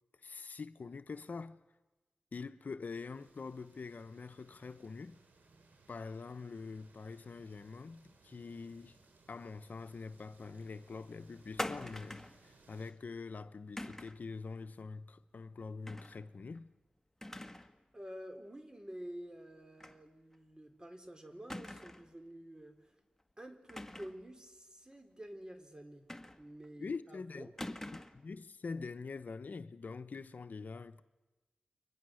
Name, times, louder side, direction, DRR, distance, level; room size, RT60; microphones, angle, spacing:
voice 1, 0.2-1.6 2.3-5.2 5.9-9.0 9.3-16.7 26.8-27.5 28.1-31.0, left 4 dB, 70° left, 0.9 m, -45 dB
sound 1, 2.9-12.9, right 3 dB, 90° right, 3.1 m, -65 dB
sound 2, 11.6-12.4 13.8-14.2 15.9-16.2 16.6-16.7 17.2-17.7 18.1-18.2 19.8-20.0 20.3-20.4 21.5-22.1 23.7-24.2 26.1-26.7 27.6-28.2, left 1 dB, 10° left, 1.6 m, -43 dB
voice 2, 17.9-22.9 23.4-26.1 26.4-27.5, equal, 25° right, 3.9 m, -49 dB
30.0 x 23.5 x 6.4 m
cardioid pair, 50°, 3 cm